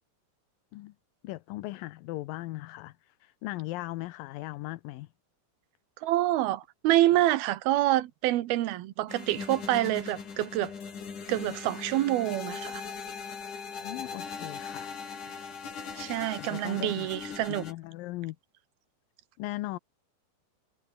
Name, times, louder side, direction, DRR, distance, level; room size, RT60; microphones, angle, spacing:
voice 1, 1.2-5.1 13.8-14.9 16.4-17.1 17.5-18.4 19.4-19.8, left 18 dB, 75° left, 2.3 m, -38 dB
voice 2, 6.0-10.7 11.3-12.8 16.0-17.6, right 15 dB, 80° right, 3.1 m, -27 dB
sound 1, 9.1-17.7, left 6 dB, 55° left, 5.4 m, -40 dB
omnidirectional pair, 4.4 m